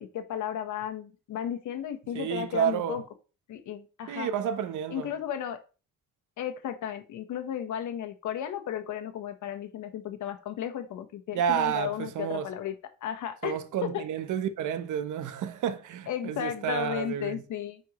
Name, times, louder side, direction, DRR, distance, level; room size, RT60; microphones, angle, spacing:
voice 1, 0.0-3.0 3.5-4.3 4.9-5.6 6.4-12.7 13.0-14.0 16.1-17.8, left 10 dB, 80° left, 1.1 m, -34 dB
voice 2, 2.1-3.0 4.1-5.1 11.3-12.5 13.4-17.4, right 9 dB, 80° right, 0.9 m, -30 dB
9.7 x 4.4 x 3.1 m
cardioid pair, 90°, 30 cm